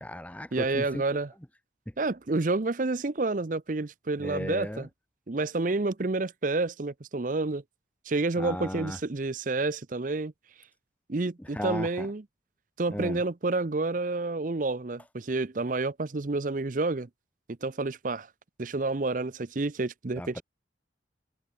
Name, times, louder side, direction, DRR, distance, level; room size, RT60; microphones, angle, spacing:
voice 1, 0.0-1.0 4.2-4.9 8.4-9.0 11.4-12.1 12.9-13.2 20.2-20.4, equal, 10° left, 1.0 m, -36 dB
voice 2, 0.5-1.3 2.0-4.9 5.3-7.6 8.1-10.3 11.1-12.2 12.8-17.1 17.6-18.3 18.6-20.4, right 3 dB, 45° right, 0.6 m, -29 dB
head